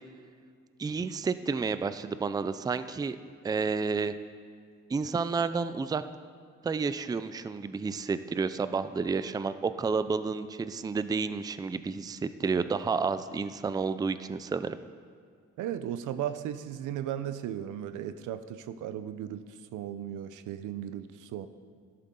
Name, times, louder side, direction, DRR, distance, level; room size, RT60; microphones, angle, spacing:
voice 1, 0.8-3.2 3.4-4.1 4.9-6.0 6.6-14.8, right 4 dB, 15° right, 12 dB, 0.4 m, -30 dB
voice 2, 15.6-21.5, right 10 dB, 85° right, 12 dB, 0.6 m, -36 dB
13.0 x 11.0 x 3.8 m, 2.1 s
cardioid pair, 90°, 30 cm